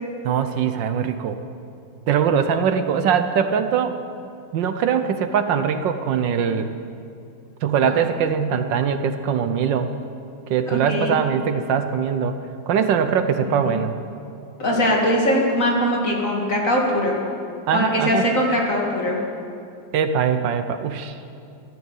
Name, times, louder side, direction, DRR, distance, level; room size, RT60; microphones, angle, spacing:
voice 1, 0.2-1.4 2.1-4.0 4.5-6.7 7.6-9.9 10.5-12.4 12.7-13.9 17.7-18.2 19.9-21.2, right 7 dB, 75° right, 9 dB, 1.4 m, -21 dB
voice 2, 10.7-11.2 13.4-13.7 14.6-17.2 17.7-19.2, left 1 dB, 40° left, -2 dB, 2.8 m, -21 dB
14.0 x 12.5 x 8.2 m, 2.5 s
omnidirectional pair, 2.1 m